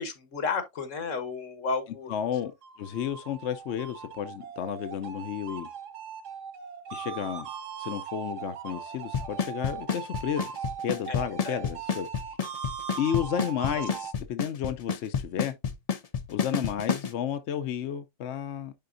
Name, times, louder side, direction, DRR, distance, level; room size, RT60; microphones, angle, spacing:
voice 1, 0.0-2.1 11.1-11.2 11.4-11.6, left 4 dB, 85° left, 1.6 m, -32 dB
voice 2, 2.1-2.5 2.8-5.7 6.9-7.5 7.8-12.4 13.0-15.5 16.3-18.7, left 9 dB, 70° left, 0.9 m, -32 dB
sound 1, 2.4-14.1, right 7 dB, 90° right, 1.3 m, -39 dB
Drum kit / Snare drum / Bass drum, 9.1-17.1, left 6 dB, 40° left, 0.6 m, -28 dB
10.5 x 3.8 x 2.5 m
omnidirectional pair, 1.3 m